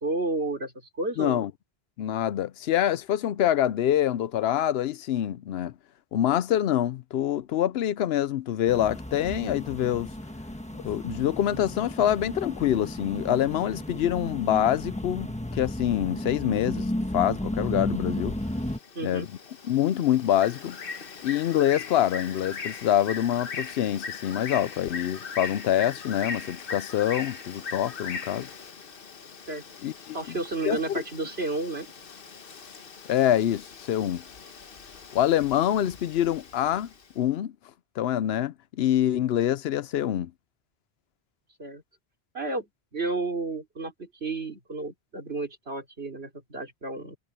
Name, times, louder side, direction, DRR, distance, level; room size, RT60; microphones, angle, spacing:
voice 1, 0.0-1.5 19.0-19.3 29.5-29.6 30.1-31.9 41.6-41.8 42.3-47.2, right 2 dB, 80° right, 3.6 m, -32 dB
voice 2, 1.2-1.5 2.0-5.7 6.1-10.1 10.7-15.3 15.5-18.4 19.0-19.3 19.7-20.8 21.2-28.5 29.8-30.2 30.7-31.0 33.1-34.2 35.1-37.5 38.0-40.3, left 11 dB, 80° left, 0.8 m, -25 dB
sound 1, 8.7-18.8, left 1 dB, 5° left, 1.2 m, -33 dB
Bird, 18.3-37.1, left 5 dB, 65° left, 1.3 m, -40 dB
omnidirectional pair, 1.0 m